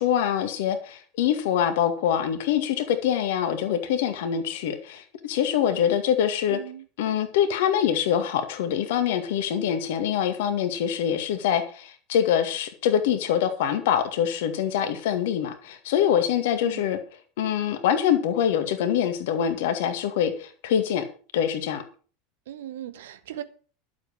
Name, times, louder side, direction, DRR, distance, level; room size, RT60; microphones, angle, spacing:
voice 1, 0.0-6.6 7.0-17.0 17.4-21.1 21.3-21.8, left 9 dB, 60° left, 2.0 m, -24 dB
voice 2, 6.5-6.8 16.6-16.8 22.5-23.4, right 11 dB, 60° right, 1.2 m, -38 dB
12.0 x 7.8 x 6.2 m
figure-of-eight pair, 80°, 0 cm